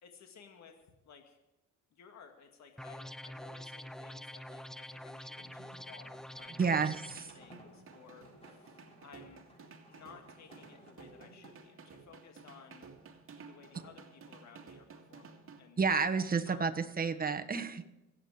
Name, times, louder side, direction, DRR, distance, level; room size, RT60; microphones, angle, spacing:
voice 1, 0.0-0.8 1.0-1.4 1.9-6.8 7.3-9.5 9.9-12.9 13.5-15.9 16.3-16.7, left 6 dB, 65° left, 4 dB, 2.1 m, -57 dB
sound 1, 2.8-7.2, left 1 dB, ahead, 0.5 m, -46 dB
sound 2, 5.3-11.7, right 1 dB, 20° left, 6.3 m, -58 dB
sound 3, 6.4-15.6, right 5 dB, 45° right, 2.2 m, -54 dB
voice 2, 6.6-7.3 15.8-17.9, right 5 dB, 30° right, 8 dB, 1.2 m, -30 dB
24.5 x 8.7 x 4.9 m, 0.92 s
cardioid pair, 90°, 30 cm